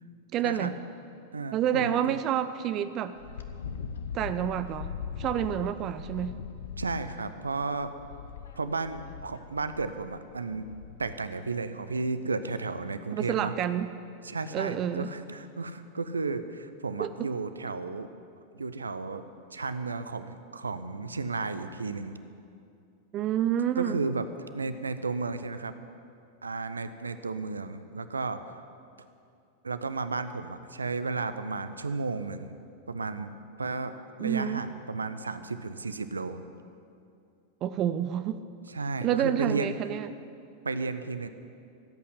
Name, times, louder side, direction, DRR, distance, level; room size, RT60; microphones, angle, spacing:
voice 1, 0.3-0.8 1.5-3.1 4.1-4.9 5.2-6.4 13.1-13.9 14.5-15.1 17.0-17.3 23.1-24.0 34.2-34.6 37.6-38.4 39.0-40.1, right 10 dB, 35° right, 12 dB, 0.5 m, -29 dB
voice 2, 1.3-2.2 6.8-7.9 8.6-10.7 11.0-13.5 14.2-18.1 18.5-19.2 19.5-22.2 23.8-24.3 24.5-25.7 26.4-28.4 29.6-32.5 32.9-33.3 33.6-36.4 38.7-39.7 40.6-41.3, right 4 dB, 75° right, 11 dB, 0.7 m, -33 dB
Wind, 3.2-11.3, left 7 dB, 65° left, 0.9 m, -41 dB
14.5 x 8.5 x 9.8 m, 2.5 s
figure-of-eight pair, 90°, 0 cm